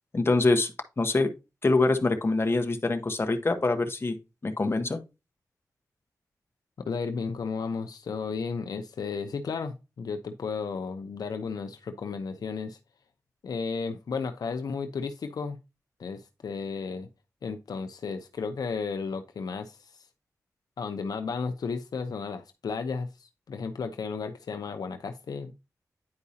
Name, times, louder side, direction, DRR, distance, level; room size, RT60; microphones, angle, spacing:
voice 1, 0.1-0.7 1.0-1.3 1.6-4.2 4.4-5.0, left 2 dB, 40° left, 1.1 m, -24 dB
voice 2, 6.8-12.8 13.4-15.6 16.0-17.1 17.4-19.9 20.8-25.6, left 5 dB, 85° left, 0.7 m, -33 dB
9.7 x 4.7 x 2.8 m
wide cardioid pair, 70°, 6 cm